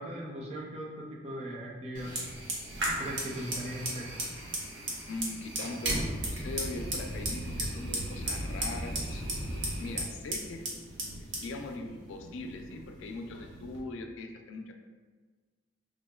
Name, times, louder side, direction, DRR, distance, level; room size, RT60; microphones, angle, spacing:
voice 1, 0.0-2.2 3.0-4.1, right 1 dB, 30° right, -2 dB, 0.4 m, -39 dB
Fire, 1.9-13.8, right 1 dB, 80° right, 0.7 m, -36 dB
voice 2, 5.1-9.2 9.8-10.7 11.4-14.7, left 2 dB, 80° left, 4 dB, 0.3 m, -40 dB
3.6 x 2.1 x 2.2 m, 1.4 s
head